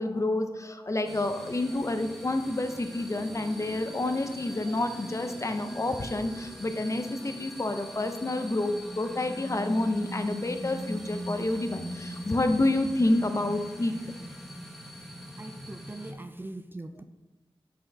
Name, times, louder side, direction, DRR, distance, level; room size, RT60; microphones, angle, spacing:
voice 1, 0.0-13.9, left 2 dB, 30° left, 7 dB, 0.5 m, -29 dB
sound 1, 1.0-16.1, equal, ahead, 0.9 m, -41 dB
voice 2, 15.4-17.0, right 2 dB, 20° right, 8 dB, 0.3 m, -41 dB
5.5 x 3.9 x 4.5 m, 1.1 s
wide cardioid pair, 85°, 10 cm